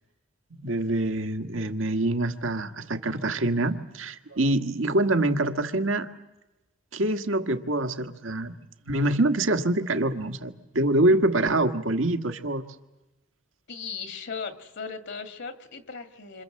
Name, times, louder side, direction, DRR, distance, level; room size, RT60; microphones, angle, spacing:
voice 1, 0.5-6.1 6.9-8.6 8.9-12.6, right 2 dB, 80° right, 7 dB, 1.7 m, -25 dB
voice 2, 13.7-16.4, left 5 dB, 65° left, 9 dB, 2.0 m, -37 dB
27.5 x 26.0 x 7.7 m, 1.0 s
head